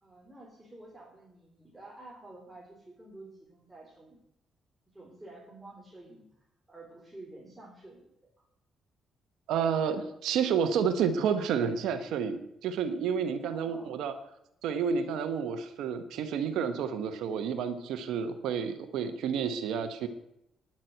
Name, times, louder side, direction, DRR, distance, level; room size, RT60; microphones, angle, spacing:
voice 1, 0.0-4.2 4.9-6.3 6.7-8.1 13.4-14.0, right 2 dB, 10° right, -3 dB, 3.7 m, -50 dB
voice 2, 9.5-14.1 14.6-20.1, right 7 dB, 85° right, 8 dB, 1.1 m, -30 dB
10.5 x 7.5 x 9.1 m, 0.81 s
cardioid pair, 90°, 0 cm